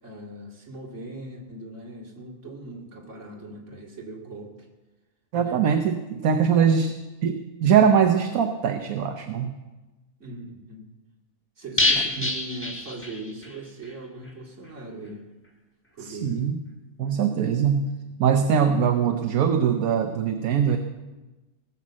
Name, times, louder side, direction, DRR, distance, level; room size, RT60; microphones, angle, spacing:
voice 1, 0.0-4.7 5.4-5.6 10.2-10.9 11.6-15.2 15.9-16.4, right 1 dB, 55° right, -1 dB, 2.7 m, -40 dB
voice 2, 5.3-6.9 7.2-9.6 12.2-12.3 16.0-16.6 17.0-17.9 18.2-20.8, right 7 dB, 75° right, 5 dB, 1.2 m, -22 dB
sound 1, 11.8-13.6 13.8-13.9 14.3-14.4, left 2 dB, 10° left, 1.2 m, -26 dB
18.0 x 7.0 x 7.4 m, 1.1 s
omnidirectional pair, 1.5 m